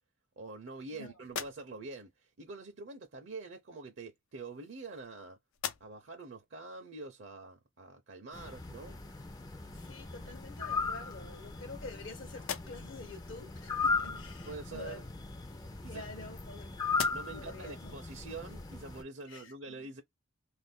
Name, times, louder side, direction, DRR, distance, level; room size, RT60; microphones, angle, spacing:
voice 1, 0.4-5.4 5.8-9.0 14.5-15.0 15.8-16.0 17.1-20.0, right 3 dB, 65° right, 0.6 m, -45 dB
sound 1, 1.2-2.1 3.2-3.4 4.3-5.2 5.5-6.2 6.7-6.8 9.5-9.6 10.0-10.7 11.3-12.0 12.3-13.1 15.1-16.5 16.9-17.6, left 8 dB, 85° left, 0.5 m, -44 dB
sound 2, 8.3-19.0, left 4 dB, 20° left, 0.3 m, -38 dB
voice 2, 9.7-15.0 15.9-16.7 17.3-18.0 19.3-19.8, left 2 dB, 65° left, 0.8 m, -48 dB
2.5 x 2.1 x 3.5 m
head